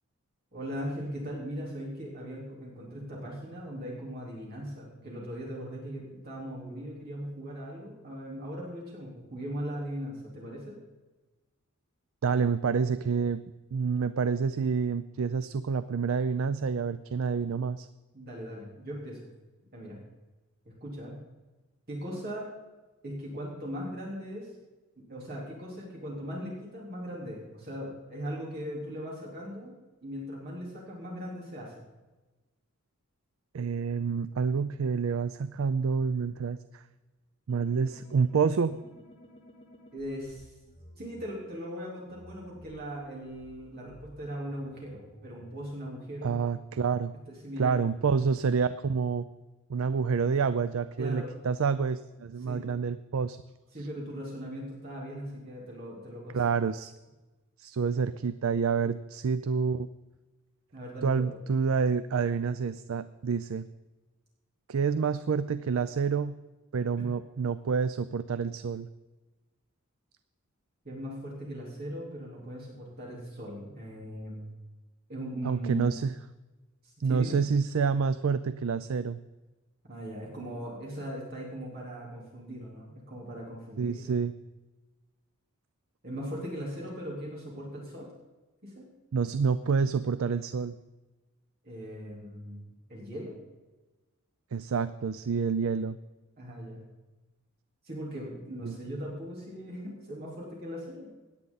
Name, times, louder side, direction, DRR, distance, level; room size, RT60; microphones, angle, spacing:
voice 1, 0.5-10.7 18.1-19.3 19.7-20.0 20.7-21.2 21.9-22.5 23.0-24.5 25.0-29.8 30.0-31.8 39.9-40.5 41.0-46.4 47.3-47.8 51.0-51.4 52.4-52.7 53.7-56.6 60.7-61.3 67.0-67.1 70.8-74.5 75.1-75.9 76.8-77.3 79.9-84.2 86.0-88.1 88.6-88.9 91.6-93.3 96.4-96.8 97.8-101.1, equal, 45° right, -4 dB, 3.7 m, -39 dB
voice 2, 12.2-13.4 13.7-17.9 33.5-36.8 37.5-38.7 46.2-47.1 47.6-49.3 49.7-53.4 56.3-56.9 57.6-59.9 61.0-63.7 64.7-66.4 66.7-68.9 75.4-76.1 77.0-79.2 83.8-84.3 89.1-90.8 94.5-96.0 98.6-98.8, right 5 dB, 70° right, 13 dB, 0.4 m, -28 dB
sound 1, 37.5-41.2 42.1-45.6, equal, 35° left, 2.7 m, -54 dB
17.5 x 10.5 x 4.1 m, 1.2 s
head